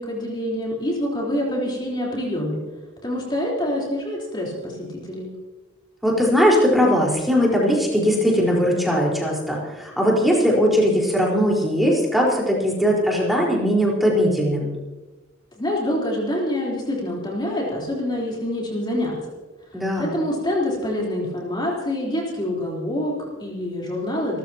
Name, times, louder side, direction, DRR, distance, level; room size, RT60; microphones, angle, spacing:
voice 1, 0.0-2.6 3.0-5.3 15.6-19.2 19.7-24.4, left 1 dB, 25° left, -4 dB, 3.9 m, -26 dB
voice 2, 6.0-14.7 19.7-20.1, equal, ahead, -3 dB, 4.6 m, -19 dB
28.5 x 14.5 x 3.0 m, 1.2 s
head